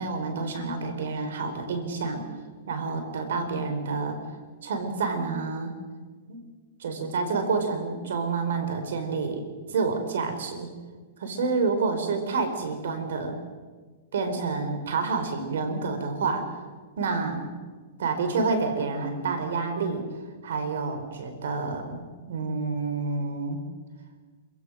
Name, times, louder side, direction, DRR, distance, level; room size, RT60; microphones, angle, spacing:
voice 1, 0.0-2.3 2.7-4.2 4.6-5.7 6.3-6.4 6.8-9.4 9.7-10.7 11.2-13.4 14.1-16.5 17.0-17.5 18.0-20.1 20.4-23.6, right 4 dB, 80° right, 7 dB, 4.2 m, -28 dB
27.0 x 16.0 x 6.3 m, 1.4 s
hypercardioid pair, 150°, 0 cm